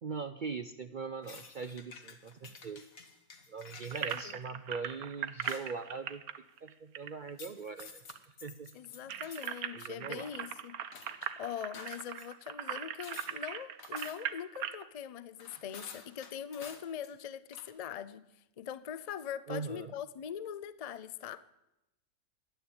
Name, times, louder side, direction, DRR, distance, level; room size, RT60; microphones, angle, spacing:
voice 1, 0.0-2.8 3.5-6.2 6.6-8.7 9.2-9.4 9.7-10.3 19.5-19.9, right 5 dB, 55° right, 10 dB, 0.5 m, -41 dB
sound 1, 1.2-4.3 5.4-5.8 7.3-9.5 9.8-11.3 11.7-12.3 13.0-13.3 13.8-14.4 15.4-17.2 17.5-17.7, left 5 dB, 70° left, 1.9 m, -51 dB
sound 2, 3.9-7.8 8.1-8.2 8.5-14.8, right 9 dB, 80° right, 1.3 m, -39 dB
voice 2, 4.0-4.3 8.7-10.8 11.1-18.2 18.6-21.4, left 9 dB, 50° left, 16 dB, 0.4 m, -42 dB
13.5 x 10.5 x 8.7 m, 0.91 s
omnidirectional pair, 1.5 m